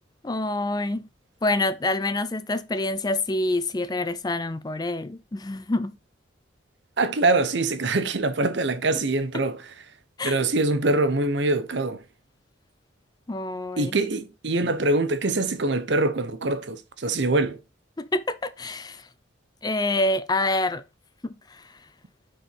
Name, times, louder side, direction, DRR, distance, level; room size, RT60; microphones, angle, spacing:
voice 1, 0.2-1.1 1.4-6.0 10.2-10.4 13.3-14.0 18.0-19.1 19.6-20.8 21.2-21.7, left 2 dB, 20° left, 0.4 m, -27 dB
voice 2, 7.0-9.7 10.2-12.0 13.8-17.6, right 2 dB, 65° right, 0.8 m, -24 dB
6.2 x 4.8 x 4.4 m
head